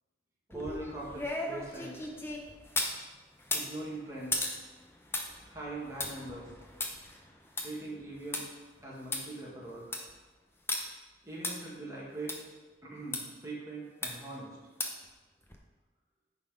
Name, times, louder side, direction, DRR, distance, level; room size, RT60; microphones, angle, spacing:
sound 1, 0.5-3.0 3.4-8.4 8.8-8.9 9.1-9.2 9.7-10.1 10.7-10.8 11.4-11.5 12.3-12.4 13.1-13.2 14.0-14.3 14.8-15.1 15.5-15.6, left 2 dB, 15° left, 0.7 m, -36 dB
voice 1, 0.5-2.0 3.5-4.5 5.5-6.5 7.6-8.5 8.8-9.9 11.2-12.4 12.8-14.6, right 2 dB, 15° right, -6 dB, 2.1 m, -42 dB
9.5 x 4.1 x 5.1 m, 1.3 s
head